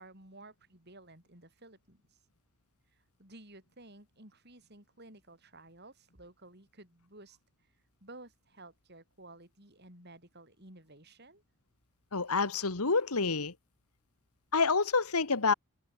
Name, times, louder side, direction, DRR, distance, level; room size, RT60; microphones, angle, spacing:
voice 1, 0.0-2.2 2.9-7.4 8.0-11.4 12.3-12.4, right 2 dB, 45° right, 7.6 m, -54 dB
voice 2, 12.1-13.5 14.5-15.5, left 4 dB, 85° left, 1.7 m, -28 dB
head